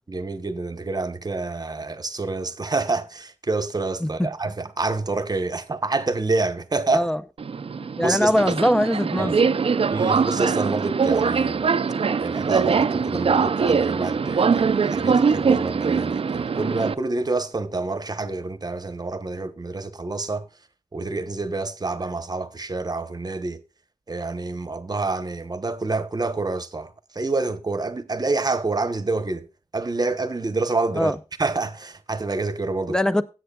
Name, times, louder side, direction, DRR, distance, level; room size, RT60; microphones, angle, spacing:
voice 1, 0.1-7.1 8.0-8.5 9.2-9.3 9.9-11.7 12.2-20.5 20.9-23.6 24.1-29.5 29.7-33.0, right 3 dB, 35° right, 1.0 m, -27 dB
Subway metro underground, 7.4-16.9, right 5 dB, 55° right, 0.5 m, -22 dB
voice 2, 8.0-9.5 31.0-31.1 32.9-33.2, left 1 dB, 5° left, 0.6 m, -22 dB
17.0 x 8.0 x 2.3 m
wide cardioid pair, 100°, 12 cm